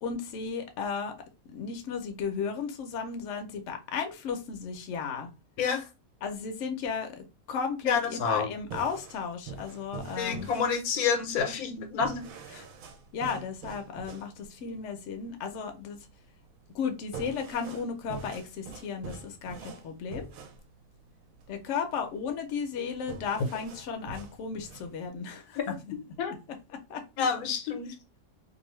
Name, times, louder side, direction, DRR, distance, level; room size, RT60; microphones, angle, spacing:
voice 1, 0.0-1.1 1.5-5.3 6.2-10.5 12.5-12.6 13.1-16.0 16.7-20.3 21.5-25.8 26.9-27.0, left 6 dB, 65° left, 5 dB, 0.9 m, -34 dB
voice 2, 5.6-5.9 7.8-8.5 9.9-12.2 25.7-25.8 26.2-26.4 27.2-27.9, left 6 dB, 85° left, 5 dB, 1.2 m, -28 dB
sound 1, 8.6-25.1, right 5 dB, 75° right, 1.0 m, -45 dB
2.6 x 2.5 x 3.0 m, 0.27 s
omnidirectional pair, 1.5 m